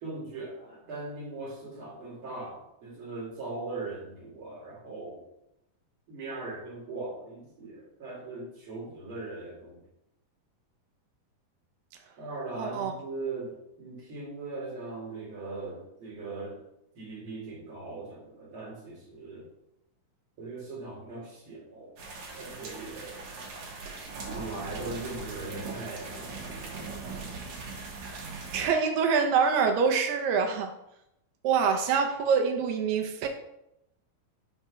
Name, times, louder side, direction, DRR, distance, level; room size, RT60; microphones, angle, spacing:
voice 1, 0.0-5.2 6.1-9.8 12.2-16.6 17.0-19.5 20.4-22.0 22.3-23.3 24.3-26.3 26.8-26.9, right 3 dB, 45° right, -4 dB, 2.2 m, -39 dB
voice 2, 12.6-12.9 28.5-30.7 31.4-33.3, right 6 dB, 75° right, 4 dB, 2.2 m, -25 dB
sound 1, 22.0-28.7, right 3 dB, 60° right, 2.2 m, -40 dB
5.6 x 4.3 x 6.1 m, 0.84 s
omnidirectional pair, 4.3 m